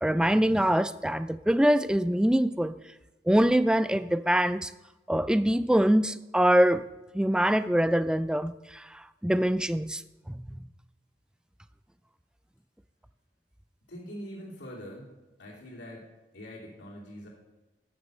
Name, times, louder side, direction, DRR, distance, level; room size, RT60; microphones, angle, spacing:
voice 1, 0.0-2.7 3.3-4.7 5.1-6.8 7.1-8.8 9.2-10.0 10.3-10.4, equal, 5° right, 13 dB, 0.3 m, -24 dB
voice 2, 13.9-15.1 15.4-16.1 16.3-17.3, equal, 85° left, -3 dB, 2.8 m, -43 dB
11.5 x 6.2 x 7.6 m, 1.1 s
head